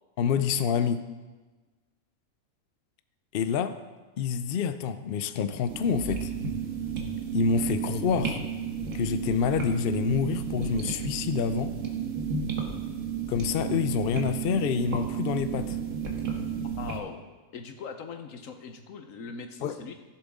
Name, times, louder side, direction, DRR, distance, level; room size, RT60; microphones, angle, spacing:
voice 1, 0.2-1.0 3.3-3.8 4.2-6.3 7.3-8.4 8.9-11.7 13.3-15.8 19.6-19.7, left 7 dB, 60° left, 10 dB, 0.6 m, -27 dB
sound 1, 5.7-17.0, right 6 dB, 65° right, 1.6 m, -32 dB
voice 2, 16.8-17.2 17.5-19.9, left 5 dB, 75° left, 6 dB, 1.3 m, -40 dB
15.0 x 7.1 x 3.6 m, 1.2 s
omnidirectional pair, 1.4 m